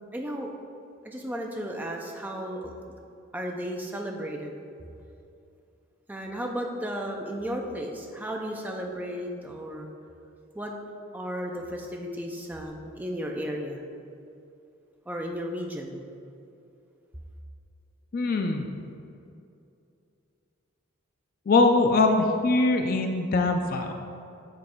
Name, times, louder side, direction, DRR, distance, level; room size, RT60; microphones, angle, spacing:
voice 1, 0.1-0.5 1.0-2.9 3.3-4.5 6.1-9.9 10.5-10.7 11.1-13.8 15.1-16.0, equal, 10° right, 1 dB, 0.5 m, -34 dB
voice 2, 18.1-18.7 21.5-23.9, left 3 dB, 45° left, 4 dB, 0.4 m, -22 dB
8.4 x 3.2 x 4.5 m, 2.6 s
head